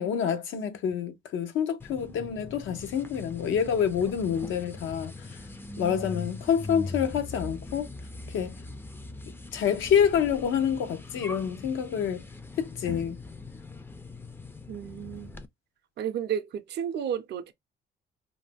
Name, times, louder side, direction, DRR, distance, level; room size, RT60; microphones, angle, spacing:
voice 1, 0.0-5.3 5.8-7.9 8.3-8.6 9.5-12.2 12.6-13.2, left 8 dB, 80° left, 0.7 m, -27 dB
sound 1, 1.8-15.4, left 2 dB, 10° left, 0.4 m, -41 dB
voice 2, 14.7-15.4 16.0-17.5, right 9 dB, 60° right, 0.5 m, -32 dB
2.6 x 2.1 x 3.3 m
cardioid pair, 90°, 20 cm